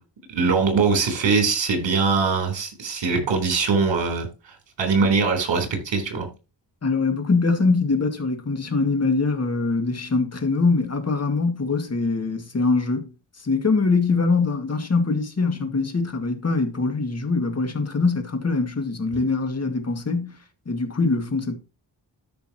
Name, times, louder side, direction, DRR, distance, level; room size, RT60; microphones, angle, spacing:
voice 1, 0.3-6.3, right 4 dB, 80° right, 3.8 m, -22 dB
voice 2, 6.8-13.1 13.4-20.4 20.7-21.5, left 3 dB, 35° left, 2.0 m, -23 dB
13.5 x 5.5 x 2.9 m
wide cardioid pair, 105°, 44 cm